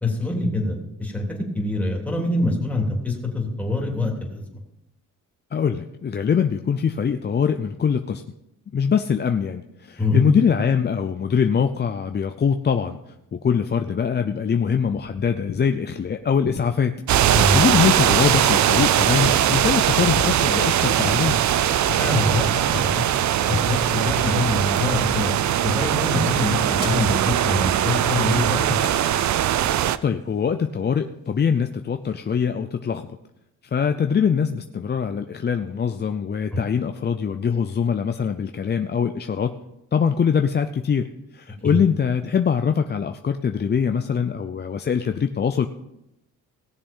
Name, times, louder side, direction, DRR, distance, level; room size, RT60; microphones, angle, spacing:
voice 1, 0.0-4.4 10.0-10.3 17.4-17.6 22.0-22.9 23.5-25.3 25.6-28.7 36.5-36.6 41.6-41.8, left 2 dB, 5° left, -1 dB, 3.3 m, -24 dB
voice 2, 5.5-8.2 8.7-13.0 13.3-21.4 30.0-33.2 33.7-39.5 39.9-45.7, left 7 dB, 35° left, 7 dB, 0.6 m, -23 dB
sound 1, 15.0-24.6, left 6 dB, 85° left, 1.7 m, -38 dB
sound 2, 17.1-30.0, right 11 dB, 65° right, 0.6 m, -20 dB
sound 3, 26.8-31.5 32.0-32.1, left 1 dB, 15° right, 3.2 m, -42 dB
17.5 x 7.0 x 5.5 m, 0.87 s
cardioid pair, 100°, 32 cm